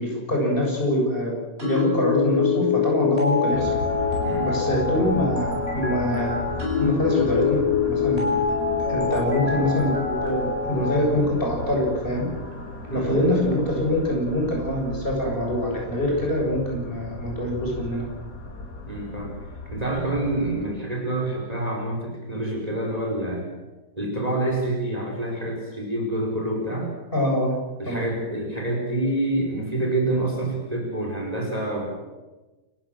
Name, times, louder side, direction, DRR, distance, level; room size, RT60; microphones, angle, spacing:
voice 1, 0.0-1.3 1.6-3.7 4.4-5.5 5.7-6.4 6.8-8.3 8.9-12.3 12.9-18.0 27.1-27.6 27.9-28.0, left 1 dB, 30° left, -1 dB, 7.6 m, -24 dB
sound 1, 1.6-11.0, left 5 dB, 35° right, 8.3 m, -25 dB
sound 2, 3.5-20.7, left 3 dB, 70° left, 3.3 m, -35 dB
voice 2, 18.9-19.4 19.7-23.5 24.0-26.9 27.8-31.9, right 1 dB, 20° right, 0 dB, 5.3 m, -27 dB
29.0 x 16.0 x 7.7 m, 1.2 s
omnidirectional pair, 1.8 m